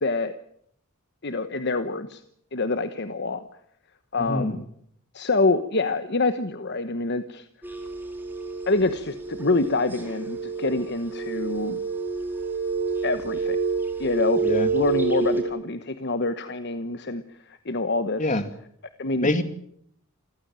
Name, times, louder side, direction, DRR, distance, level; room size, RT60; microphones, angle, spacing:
voice 1, 0.0-0.3 1.2-2.2 2.5-3.4 4.1-4.7 5.1-7.4 8.7-11.8 13.0-13.6 14.0-14.4 14.7-17.2 17.5-18.4 19.0-19.3, left 3 dB, 50° left, 10 dB, 1.1 m, -26 dB
voice 2, 4.2-4.6 14.4-14.7 18.2-18.4 19.2-19.4, left 2 dB, 35° left, 9 dB, 2.3 m, -24 dB
sound 1, 7.6-15.4, right 4 dB, 10° right, 4.7 m, -28 dB
28.0 x 15.0 x 8.9 m, 0.71 s
head